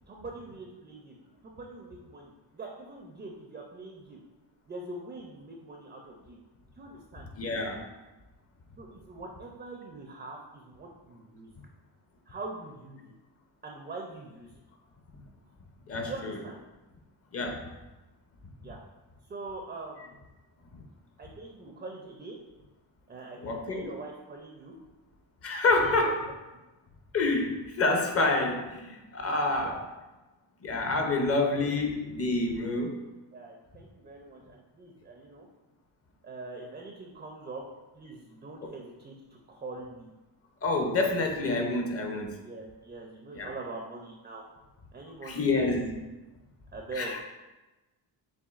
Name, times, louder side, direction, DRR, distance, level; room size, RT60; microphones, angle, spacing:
voice 1, 0.1-1.1 1.4-4.2 4.7-6.4 6.8-7.3 8.8-11.5 12.3-13.1 13.6-14.6 16.1-16.6 18.6-18.8 19.3-20.1 21.2-22.4 23.1-24.8 25.7-26.6 29.6-29.8 30.9-31.3 31.7-32.3 33.3-35.5 36.2-37.6 37.9-40.1 42.4-44.5 44.9-45.7 46.7-47.1, right 2 dB, 20° right, 1 dB, 0.4 m, -43 dB
voice 2, 7.4-7.8 15.9-16.4 17.3-17.7 20.7-20.8 23.4-23.9 25.4-26.3 27.1-29.8 30.6-33.0 38.6-38.7 40.6-42.4 43.3-43.5 45.2-46.0 46.9-47.2, left 2 dB, 35° left, 3 dB, 0.6 m, -28 dB
6.9 x 2.5 x 2.4 m, 1.1 s
cardioid pair, 125°, 43 cm